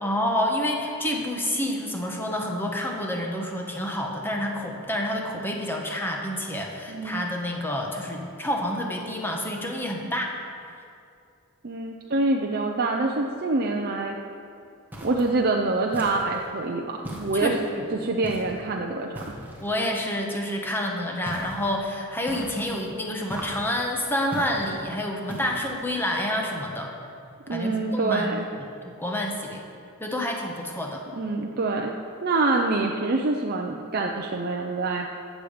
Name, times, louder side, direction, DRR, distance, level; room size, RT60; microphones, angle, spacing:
voice 1, 0.0-10.4 17.3-17.8 19.6-26.9 27.5-28.3 29.0-29.6 30.0-31.0, left 1 dB, 10° left, 0 dB, 1.3 m, -28 dB
voice 2, 6.9-7.3 11.6-14.2 15.0-17.5 17.9-19.2 27.5-28.5 31.2-31.9 32.2-35.1, right 3 dB, 45° right, 1 dB, 0.7 m, -26 dB
sound 1, 14.9-15.4 15.9-16.5 17.0-17.7 18.2-18.6 19.1-19.7 21.3-21.7 22.3-22.8 23.3-23.8 24.3-24.8 25.3-25.8, equal, 10° right, 1.7 m, -38 dB
15.0 x 7.4 x 5.1 m, 2.5 s
head